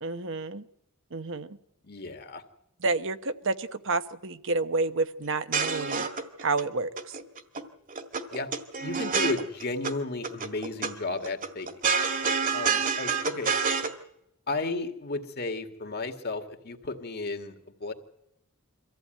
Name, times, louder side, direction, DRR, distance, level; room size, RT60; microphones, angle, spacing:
voice 1, 0.0-0.6 1.1-1.6 2.8-6.1 6.4-7.1, right 3 dB, 60° right, 10 dB, 1.0 m, -29 dB
voice 2, 1.8-2.4 8.3-8.5 8.8-11.7 12.5-13.5 14.5-17.9, left 3 dB, 45° left, 6 dB, 2.1 m, -33 dB
sound 1, 5.3-6.6 7.0-7.6 7.9-9.9 10.2-10.9 11.2-13.9, right 5 dB, 40° right, 1.8 m, -28 dB
24.0 x 15.0 x 9.0 m, 0.81 s
head